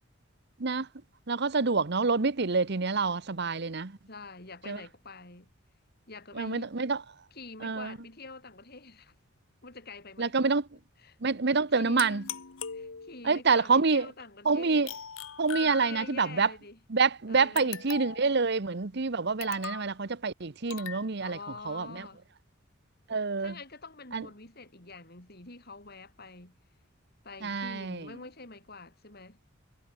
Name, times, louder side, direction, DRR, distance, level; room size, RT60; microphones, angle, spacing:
voice 1, 1.3-3.9 4.7-4.8 6.4-7.0 7.6-8.0 10.2-10.6 11.2-12.2 13.2-14.1 14.5-14.9 15.4-16.5 16.9-21.4 21.7-21.9 23.1-23.5 24.1-24.2 27.4-28.0, right 4 dB, 55° right, 1.0 m, -27 dB
voice 2, 4.1-5.5 6.1-6.8 7.3-9.2 9.6-10.5 11.0-11.2 11.5-12.2 12.7-15.0 15.6-16.8 17.3-17.7 21.2-22.3 23.4-26.6 27.2-29.4, left 3 dB, 50° left, 5.7 m, -46 dB
sound 1, 12.0-13.4 14.9-16.3 17.6-18.3 19.4-19.9 20.7-21.1, left 8 dB, 75° left, 1.1 m, -40 dB
head